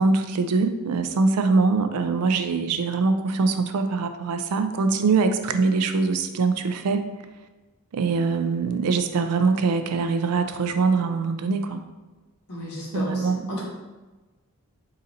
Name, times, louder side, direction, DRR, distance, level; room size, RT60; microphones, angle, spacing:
voice 1, 0.0-7.0 7.9-11.8 12.9-13.5, right 4 dB, 85° right, 8 dB, 0.4 m, -23 dB
voice 2, 12.5-13.6, left 1 dB, 90° left, -4 dB, 1.4 m, -33 dB
3.8 x 2.7 x 4.0 m, 1.2 s
head